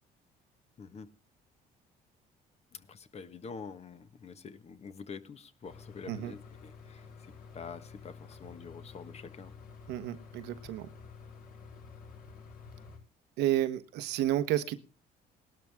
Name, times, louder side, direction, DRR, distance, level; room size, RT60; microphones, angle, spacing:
voice 1, 0.8-1.1 2.7-9.5, left 5 dB, 40° left, 12 dB, 1.4 m, -46 dB
sound 1, 5.6-13.0, left 5 dB, 65° left, 7.6 m, -50 dB
voice 2, 9.9-10.9 13.4-14.8, right 13 dB, 90° right, 12 dB, 1.1 m, -31 dB
18.5 x 12.0 x 3.6 m, 0.33 s
cardioid pair, 110°, 17 cm